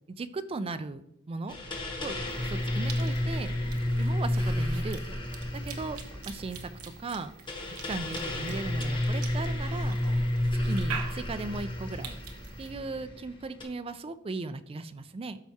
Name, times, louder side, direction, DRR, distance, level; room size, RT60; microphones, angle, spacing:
voice 1, 0.2-1.6 2.0-2.1 2.4-3.6 4.0-5.1 5.5-6.0 6.2-7.3 7.8-10.0 10.6-12.1 12.6-15.4, right 3 dB, 25° right, 11 dB, 0.3 m, -37 dB
sound 1, 1.5-13.6, left 1 dB, 20° left, 1.0 m, -31 dB
Cough / Chewing mastication, 2.3-12.7, right 6 dB, 80° right, 0.9 m, -45 dB
12.5 x 4.6 x 2.8 m, 0.80 s
head